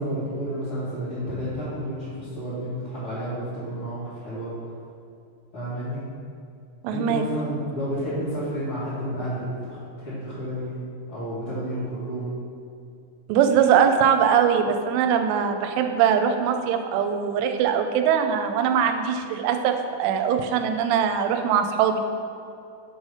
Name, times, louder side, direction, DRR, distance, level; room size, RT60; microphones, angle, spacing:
voice 1, 0.0-4.5 5.5-6.0 6.9-12.3, equal, 50° left, -14 dB, 1.7 m, -31 dB
voice 2, 6.8-7.2 13.3-22.0, right 8 dB, 85° right, 6 dB, 2.7 m, -21 dB
8.6 x 3.2 x 5.5 m, 2.5 s
omnidirectional pair, 4.9 m